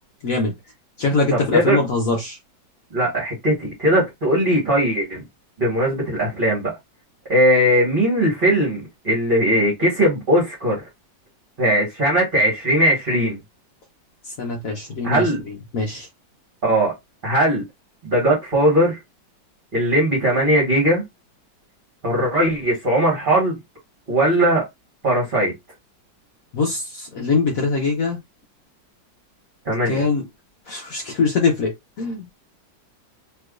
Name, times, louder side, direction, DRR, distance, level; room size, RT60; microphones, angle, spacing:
voice 1, 0.2-0.5 1.0-2.4 14.2-16.1 26.5-28.2 29.9-30.2 30.7-32.4, left 4 dB, 60° left, 1.1 m, -23 dB
voice 2, 1.3-1.8 2.9-5.2 5.6-6.7 7.3-10.8 11.6-13.4 15.0-15.4 16.6-16.9 17.2-17.6 18.0-19.0 19.7-21.0 22.0-23.6 24.1-24.6 25.0-25.5 29.6-30.0, right 1 dB, 30° right, 1.3 m, -19 dB
3.3 x 3.0 x 2.3 m
omnidirectional pair, 1.9 m